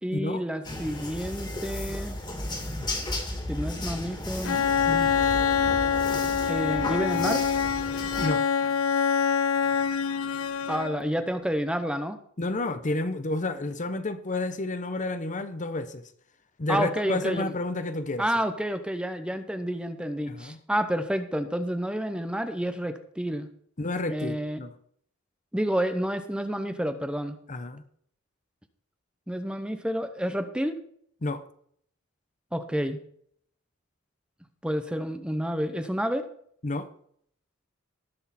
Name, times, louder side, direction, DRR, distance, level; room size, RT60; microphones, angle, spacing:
voice 1, 0.0-2.2 3.5-5.1 6.5-7.4 10.7-12.2 16.7-17.5 18.2-23.5 24.1-24.6 25.5-27.4 29.3-30.8 32.5-33.0 34.6-36.3, equal, 5° right, 0.8 m, -29 dB
sound 1, 0.6-8.3, left 1 dB, 20° left, 2.3 m, -34 dB
Bowed string instrument, 4.4-11.2, left 7 dB, 75° left, 0.6 m, -25 dB
voice 2, 12.4-16.0 16.6-18.2 20.3-20.6 23.8-24.7 27.5-27.8 31.2-31.4 36.6-36.9, left 2 dB, 35° left, 0.9 m, -30 dB
19.0 x 6.4 x 4.2 m
head